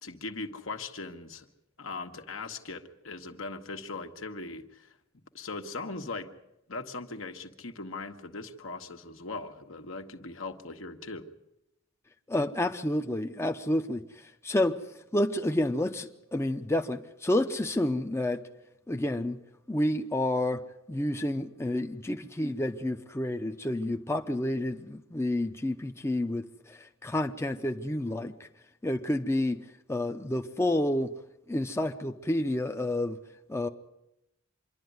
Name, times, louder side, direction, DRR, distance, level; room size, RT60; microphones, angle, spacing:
voice 1, 0.0-1.5 1.8-5.0 5.3-6.3 6.7-11.3, left 3 dB, 70° left, 1.5 m, -39 dB
voice 2, 12.3-14.8 15.1-18.4 18.9-19.4 19.7-28.5 28.8-31.1 31.5-33.2 33.5-33.7, left 1 dB, 15° left, 0.7 m, -29 dB
26.0 x 11.5 x 9.5 m
head